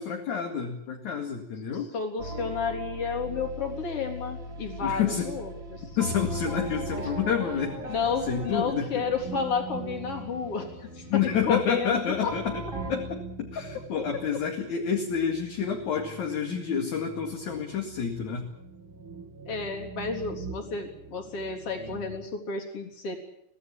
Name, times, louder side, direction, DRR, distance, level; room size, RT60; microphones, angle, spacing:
voice 1, 0.0-1.9 4.8-5.3 6.0-7.9 8.2-9.0 11.1-18.5, left 7 dB, 50° left, 2 dB, 3.1 m, -29 dB
voice 2, 1.9-5.8 7.9-11.0 11.5-12.3 19.5-23.2, left 5 dB, 35° left, 2 dB, 4.3 m, -31 dB
sound 1, 2.2-12.9, equal, 25° right, 3.3 m, -39 dB
sound 2, 5.2-22.3, right 4 dB, 40° right, 2.0 m, -44 dB
24.5 x 17.0 x 8.7 m, 0.77 s
omnidirectional pair, 5.0 m